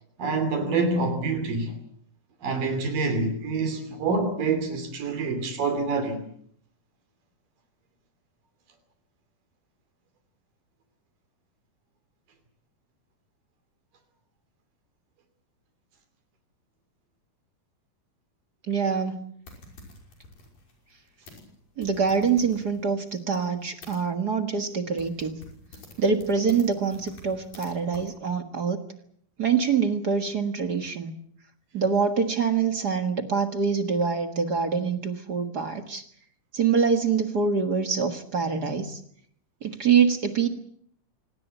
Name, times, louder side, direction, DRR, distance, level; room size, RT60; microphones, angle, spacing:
voice 1, 0.2-1.7 2.4-6.2, right 3 dB, 80° right, 4.4 m, -26 dB
voice 2, 18.7-19.2 21.8-25.4 26.0-28.8 29.4-31.1 31.7-36.0 36.5-39.0 39.6-40.5, right 6 dB, 45° right, 1.4 m, -25 dB
sound 1, 19.5-24.0 24.6-24.7 25.0-27.7 27.9-28.1, left 2 dB, 90° left, 7.4 m, -49 dB
26.0 x 18.5 x 8.2 m
omnidirectional pair, 3.9 m